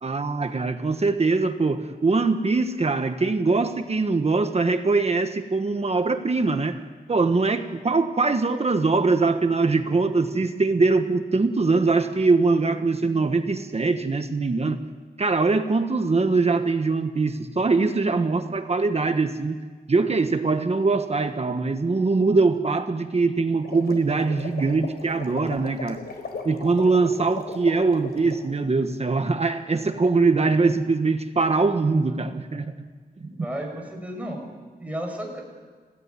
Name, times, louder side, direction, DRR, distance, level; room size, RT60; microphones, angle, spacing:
voice 1, 0.0-6.8 7.1-14.8 15.2-19.6 19.9-26.0 26.4-32.7 33.2-33.3, right 3 dB, 40° right, 7 dB, 1.3 m, -22 dB
sound 1, 23.5-28.4, left 4 dB, 75° left, 4.3 m, -37 dB
voice 2, 33.2-34.5 34.8-35.4, right 1 dB, 10° right, 1 dB, 6.4 m, -33 dB
30.0 x 17.0 x 9.7 m, 1.5 s
wide cardioid pair, 125°, 17 cm